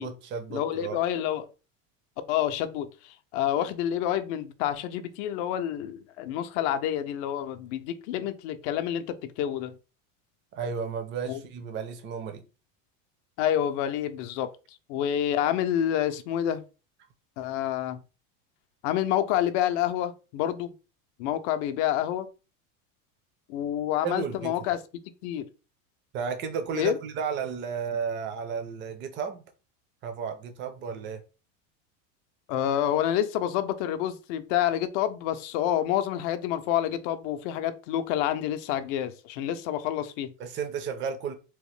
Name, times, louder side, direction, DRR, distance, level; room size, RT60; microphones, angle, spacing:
voice 1, 0.0-1.0 10.5-12.4 24.0-24.5 26.1-29.4 30.0-31.2 40.4-41.3, right 6 dB, 30° right, 0.5 m, -33 dB
voice 2, 0.5-1.5 2.3-9.8 11.3-11.4 13.4-14.5 14.9-16.6 17.4-18.0 18.8-20.7 21.2-22.3 23.5-24.8 25.2-25.5 26.7-27.0 32.5-40.3, left 11 dB, 60° left, 0.5 m, -28 dB
2.9 x 2.1 x 3.2 m
supercardioid pair, 135°, 40 cm